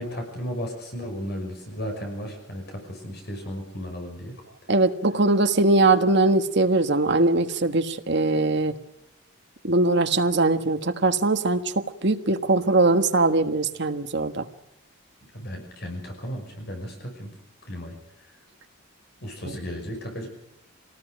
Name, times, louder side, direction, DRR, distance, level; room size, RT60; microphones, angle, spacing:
voice 1, 0.0-4.3 15.3-17.3 17.7-17.9 19.2-20.3, equal, 50° left, 3 dB, 5.9 m, -34 dB
voice 2, 4.7-8.7 9.6-11.6 12.0-14.4, right 2 dB, 55° right, 8 dB, 1.4 m, -21 dB
25.5 x 19.0 x 6.4 m, 0.82 s
head